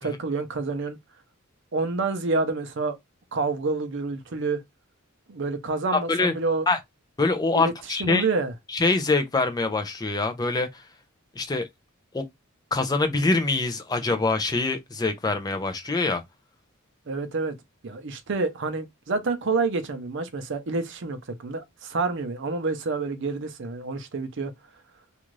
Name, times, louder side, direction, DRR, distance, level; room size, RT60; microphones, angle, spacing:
voice 1, 0.0-1.0 1.7-3.0 3.3-4.6 5.3-6.7 7.5-7.7 8.0-8.5 17.1-17.6 17.8-24.5, right 3 dB, 55° right, 0.6 m, -28 dB
voice 2, 5.9-6.3 6.7-6.8 7.2-8.3 8.7-10.9 11.3-11.7 12.1-12.3 12.7-16.2, left 3 dB, 20° left, 0.4 m, -24 dB
2.5 x 2.3 x 3.0 m
head